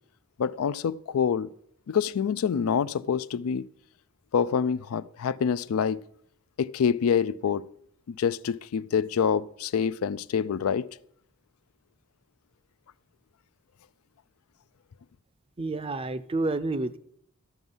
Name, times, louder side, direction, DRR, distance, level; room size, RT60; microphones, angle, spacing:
voice 1, 0.4-1.5 1.9-3.7 4.3-6.0 6.6-7.6 8.1-10.9, left 7 dB, 85° left, 0.4 m, -26 dB
voice 2, 15.6-17.0, right 2 dB, 25° right, 0.4 m, -29 dB
13.0 x 5.9 x 5.5 m
head